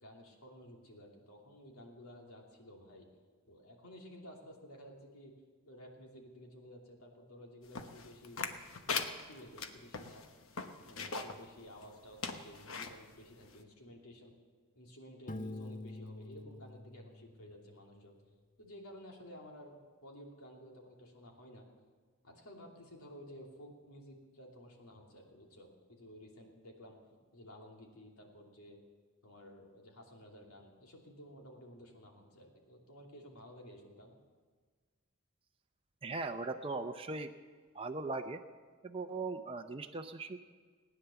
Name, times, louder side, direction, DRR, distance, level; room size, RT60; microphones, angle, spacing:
voice 1, 0.0-3.1 3.5-5.3 5.7-8.4 9.3-10.3 10.8-14.3 14.7-18.1 18.6-21.7 22.2-27.0 27.3-28.8 29.2-34.2, equal, 85° left, 0 dB, 2.9 m, -54 dB
sound 1, 7.7-11.4 11.8-11.9 12.2-12.9 13.5-13.6, left 5 dB, 65° left, 1.1 m, -39 dB
Piano, 15.3-18.0, left 2 dB, 40° left, 0.8 m, -46 dB
voice 2, 36.0-37.3 37.7-38.4 38.8-40.4, right 3 dB, 25° right, 5 dB, 0.6 m, -39 dB
19.0 x 10.0 x 7.0 m, 1.5 s
head